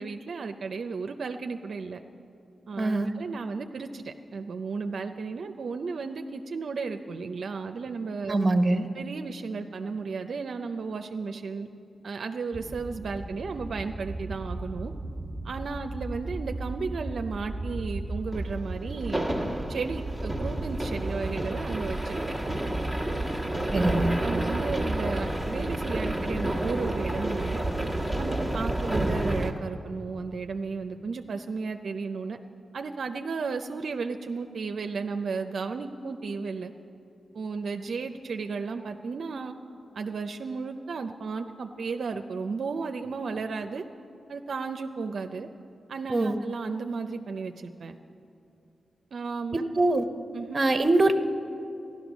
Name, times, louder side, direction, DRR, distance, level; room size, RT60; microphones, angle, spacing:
voice 1, 0.0-2.0 2.7-8.4 8.9-11.7 12.0-14.9 15.4-19.2 19.7-22.2 23.9-27.6 28.2-32.4 32.7-36.7 37.3-39.5 39.9-43.8 44.3-45.5 45.9-48.0 49.1-49.6 50.3-50.6, right 4 dB, 70° right, 6 dB, 0.5 m, -34 dB
voice 2, 2.8-3.1 8.3-8.9 23.7-24.2 46.1-46.4 49.5-50.1 50.5-51.2, right 2 dB, 35° right, 8 dB, 0.9 m, -23 dB
sound 1, 12.5-29.5, right 1 dB, 10° left, 1.5 m, -31 dB
14.5 x 11.5 x 6.1 m, 2.6 s
cardioid pair, 70°, 0 cm